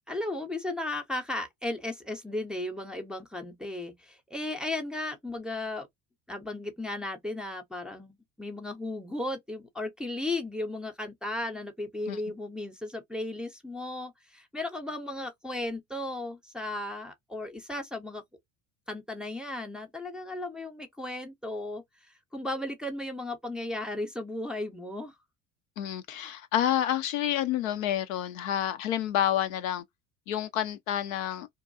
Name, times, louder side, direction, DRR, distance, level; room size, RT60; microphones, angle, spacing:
voice 1, 0.1-5.9 6.3-18.2 18.9-21.8 22.3-25.1, left 2 dB, ahead, 0.6 m, -35 dB
voice 2, 25.8-29.8 30.3-31.5, left 11 dB, 75° left, 0.5 m, -29 dB
2.6 x 2.2 x 2.5 m
hypercardioid pair, 75°, 39 cm